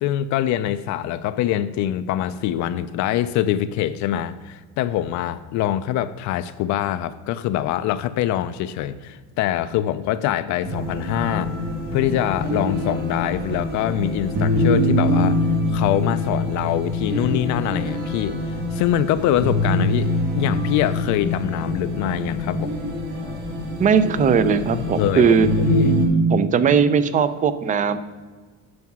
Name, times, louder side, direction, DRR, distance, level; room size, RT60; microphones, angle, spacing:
voice 1, 0.0-11.5 11.9-15.4 15.7-22.7 24.7-25.3 25.7-25.9, left 12 dB, 55° left, 12 dB, 0.5 m, -24 dB
sound 1, 10.6-26.0, left 1 dB, 45° right, 2.4 m, -24 dB
voice 2, 23.8-25.5 26.3-28.0, right 6 dB, 25° right, 14 dB, 0.4 m, -18 dB
9.4 x 6.0 x 6.0 m, 1.4 s
cardioid pair, 155°, 34 cm